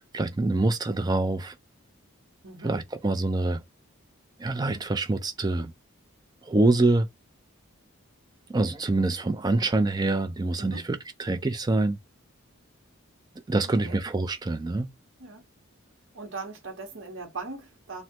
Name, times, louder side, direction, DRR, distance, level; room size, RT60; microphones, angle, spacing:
voice 1, 0.0-1.6 2.6-3.6 4.4-5.7 6.4-7.1 8.5-12.0 13.5-14.9, right 2 dB, 20° right, 0.3 m, -25 dB
voice 2, 2.4-2.7 10.6-10.8 13.6-14.0 15.2-15.4 16.1-18.0, right 3 dB, 60° right, 0.9 m, -39 dB
3.2 x 2.1 x 2.8 m
head